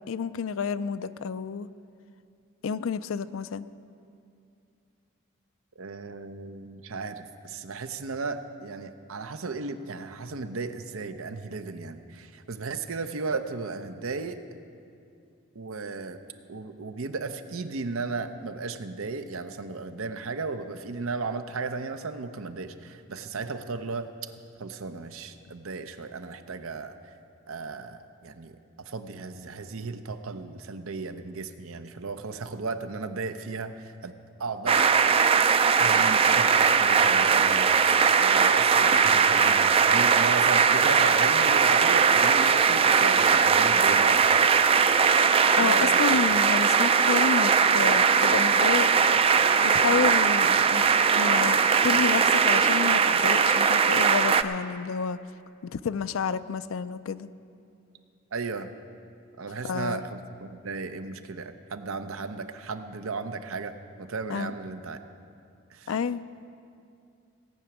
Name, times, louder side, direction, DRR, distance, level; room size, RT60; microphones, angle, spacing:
voice 1, 0.1-1.7 2.6-3.7 45.6-48.9 49.6-50.9 51.2-51.6 51.8-55.2 55.7-57.3 59.6-60.0 64.3-64.5 65.9-66.2, left 6 dB, 80° left, 14 dB, 0.4 m, -30 dB
voice 2, 5.8-14.4 15.5-16.2 16.5-24.1 24.6-26.9 27.5-34.1 34.4-34.9 35.8-37.7 38.1-44.4 45.5-46.3 50.4-50.7 58.3-58.7 59.4-65.0 65.7-65.9, right 4 dB, 90° right, 9 dB, 0.7 m, -35 dB
sound 1, 34.7-54.4, right 6 dB, 25° right, 0.3 m, -20 dB
17.5 x 6.0 x 8.6 m, 2.5 s
head